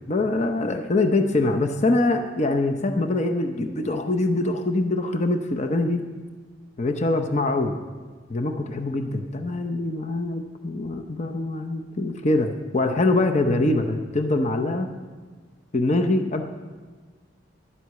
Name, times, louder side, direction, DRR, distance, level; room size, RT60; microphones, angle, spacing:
voice 1, 0.1-6.1 6.8-7.8 8.3-14.9 15.7-16.4, left 2 dB, 35° left, 6 dB, 0.7 m, -24 dB
11.0 x 7.8 x 8.1 m, 1.5 s
head